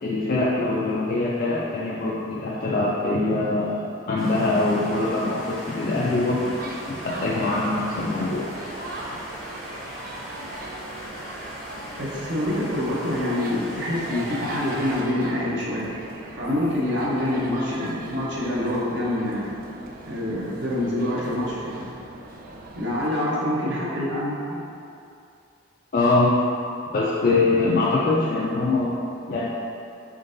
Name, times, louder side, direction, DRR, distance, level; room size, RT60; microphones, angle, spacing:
voice 1, 0.0-6.5 6.9-8.4 25.9-26.3 26.9-28.9 29.3-29.5, left 2 dB, 45° left, -7 dB, 0.4 m, -23 dB
sound 1, 4.2-15.0, equal, ahead, 0.7 m, -39 dB
sound 2, 6.3-23.1, right 2 dB, 45° right, 0.3 m, -39 dB
voice 2, 12.0-15.9 16.3-19.5 20.0-21.9 22.7-24.6, left 1 dB, 65° right, -7 dB, 0.8 m, -26 dB
3.7 x 3.6 x 2.6 m, 2.5 s
head